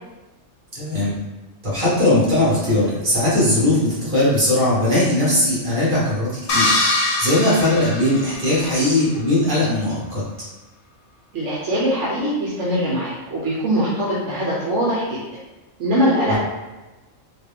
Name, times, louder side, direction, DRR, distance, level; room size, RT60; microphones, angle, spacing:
voice 1, 0.7-1.2 1.6-6.7 7.2-10.2 16.3-16.4, left 1 dB, 35° right, -9 dB, 1.7 m, -19 dB
sound 1, 6.5-8.7, left 2 dB, 60° left, 0.9 m, -22 dB
voice 2, 11.3-15.2 15.8-16.4, equal, 65° right, -6 dB, 1.1 m, -22 dB
4.1 x 2.2 x 3.5 m, 1.1 s
omnidirectional pair, 1.4 m